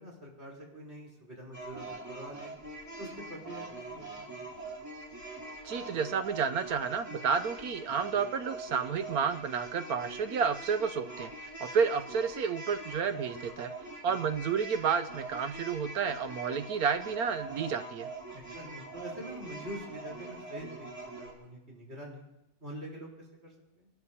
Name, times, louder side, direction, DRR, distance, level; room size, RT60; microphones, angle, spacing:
voice 1, 0.0-2.5 3.0-4.4 13.3-13.5 18.3-22.2 22.6-23.9, equal, 35° right, -3 dB, 4.2 m, -45 dB
sound 1, 1.5-21.3, right 2 dB, 10° right, 2.7 m, -43 dB
voice 2, 5.6-11.3 11.6-13.7 14.0-18.1, right 6 dB, 70° right, 10 dB, 1.0 m, -31 dB
23.5 x 13.0 x 2.8 m, 0.87 s
omnidirectional pair, 1.9 m